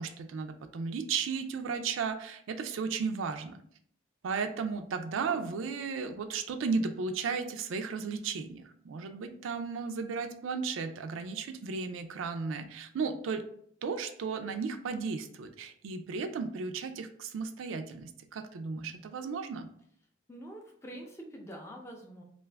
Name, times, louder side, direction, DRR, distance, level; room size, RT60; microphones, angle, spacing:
voice 1, 0.0-3.6 4.2-13.4 13.8-19.7, right 5 dB, 85° right, 7 dB, 0.3 m, -35 dB
voice 2, 20.3-22.2, right 1 dB, 15° left, 1 dB, 0.4 m, -45 dB
2.5 x 2.3 x 3.2 m, 0.63 s
head